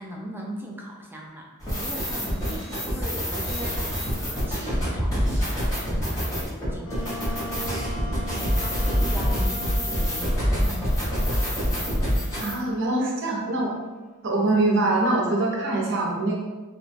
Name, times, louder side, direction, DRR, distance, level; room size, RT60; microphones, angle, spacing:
voice 1, 0.0-1.5 1.8-6.9 7.3-8.0 8.3-11.6, right 1 dB, 10° right, -1 dB, 0.3 m, -40 dB
sound 1, 1.6-12.6, equal, 15° left, 0.9 m, -26 dB
Wind instrument woodwind instrument, 6.8-14.3, equal, 75° left, 0.6 m, -40 dB
voice 2, 12.4-13.8 14.2-16.3, right 2 dB, 60° right, -2 dB, 0.6 m, -23 dB
2.9 x 2.2 x 2.6 m, 1.2 s
head